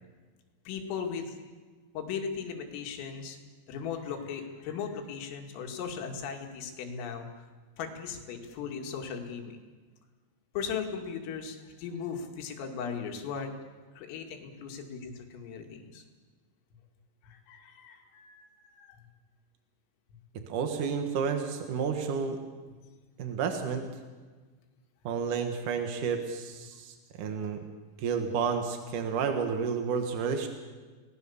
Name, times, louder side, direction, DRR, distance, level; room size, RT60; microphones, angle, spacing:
voice 1, 0.7-1.4 1.9-3.4 3.7-7.3 7.8-9.6 10.5-13.5 14.0-16.0 17.2-19.0, left 6 dB, 80° left, 3 dB, 4.8 m, -38 dB
voice 2, 20.5-22.4 23.2-23.8 25.0-27.6 28.0-30.5, right 6 dB, 65° right, 5 dB, 2.0 m, -31 dB
30.0 x 19.5 x 7.2 m, 1.4 s
omnidirectional pair, 5.9 m